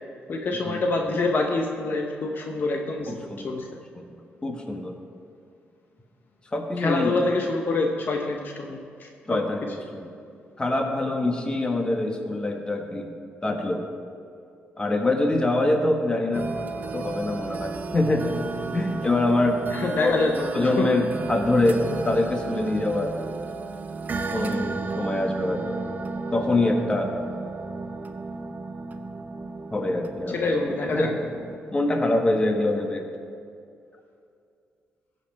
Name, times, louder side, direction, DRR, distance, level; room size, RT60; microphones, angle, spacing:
voice 1, 0.3-3.7 6.8-9.7 19.7-20.9 30.4-31.1, left 3 dB, 55° left, 2 dB, 0.8 m, -26 dB
voice 2, 3.1-3.5 3.9-4.1 4.4-4.9 6.5-7.1 9.3-10.1 10.6-13.1 13.4-13.9 14.8-18.3 18.7-19.6 20.0-20.1 20.5-23.2 24.3-25.8 26.3-27.1 29.7-30.3 30.8-31.2 31.7-33.1, left 2 dB, 20° left, 3 dB, 1.3 m, -25 dB
sound 1, 16.3-31.6, right 4 dB, 45° right, 0.7 m, -33 dB
16.0 x 5.4 x 4.5 m, 2.4 s
cardioid pair, 85°, 4 cm